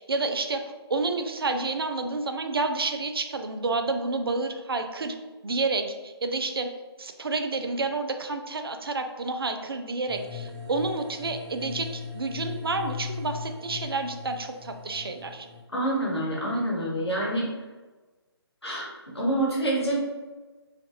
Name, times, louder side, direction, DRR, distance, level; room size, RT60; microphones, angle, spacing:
voice 1, 0.0-5.2 5.4-6.7 7.0-15.5, right 3 dB, 60° right, 6 dB, 0.4 m, -29 dB
sound 1, 10.1-15.6, left 6 dB, 5° right, 1.0 m, -38 dB
voice 2, 15.7-17.5 18.6-18.9 19.1-20.1, right 1 dB, 70° left, -5 dB, 1.3 m, -26 dB
3.1 x 2.3 x 2.8 m, 1.3 s
figure-of-eight pair, 145°, 14 cm